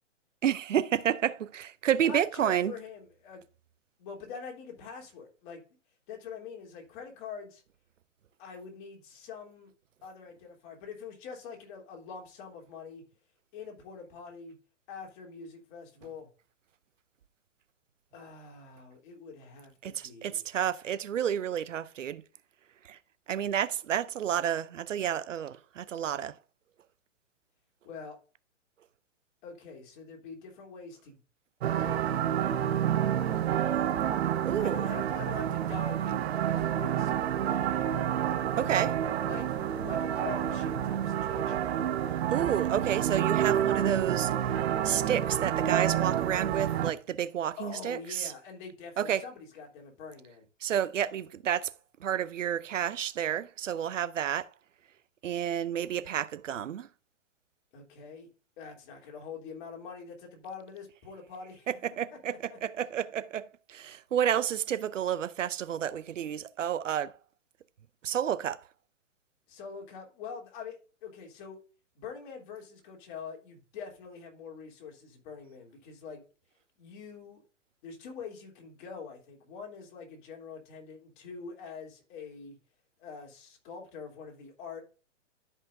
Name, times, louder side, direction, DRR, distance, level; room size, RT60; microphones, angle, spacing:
voice 1, 0.4-2.7 19.8-22.2 22.8-23.0 23.3-26.4 34.4-34.8 38.6-38.9 42.3-44.3 44.8-48.3 49.0-49.2 50.6-51.7 52.0-54.5 55.2-56.9 61.7-67.2 68.0-68.6, right 9 dB, 90° right, 0.7 m, -30 dB
voice 2, 2.0-3.4 4.0-5.6 6.1-7.6 8.4-9.7 10.0-13.0 13.5-14.6 14.9-16.3 18.1-20.4 27.8-28.2 29.4-31.2 31.8-33.1 34.6-37.6 38.2-39.0 39.2-41.7 47.6-50.5 57.7-58.3 58.6-61.7 62.1-62.6 69.5-71.6 71.9-76.2 76.8-77.4 77.8-82.6 83.0-84.8, left 5 dB, 40° left, 3.2 m, -45 dB
sound 1, 31.6-46.9, right 10 dB, 60° right, 1.0 m, -29 dB
12.5 x 5.7 x 2.6 m
hypercardioid pair, 135°, 36 cm